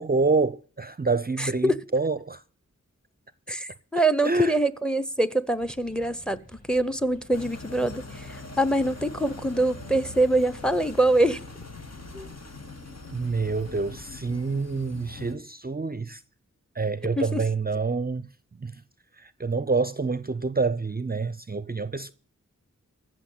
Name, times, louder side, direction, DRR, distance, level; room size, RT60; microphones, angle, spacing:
voice 1, 0.0-2.4 4.2-4.5 13.1-16.2 16.8-18.3 18.6-18.8 19.2-22.1, right 4 dB, 30° right, 0.6 m, -27 dB
voice 2, 1.4-1.8 3.5-11.4 12.1-12.3 17.2-17.4, right 1 dB, 5° left, 0.9 m, -24 dB
sound 1, 5.5-11.1, equal, 30° left, 2.7 m, -51 dB
sound 2, 7.3-15.3, left 3 dB, 55° left, 1.9 m, -42 dB
15.0 x 6.3 x 9.1 m
wide cardioid pair, 60°, 31 cm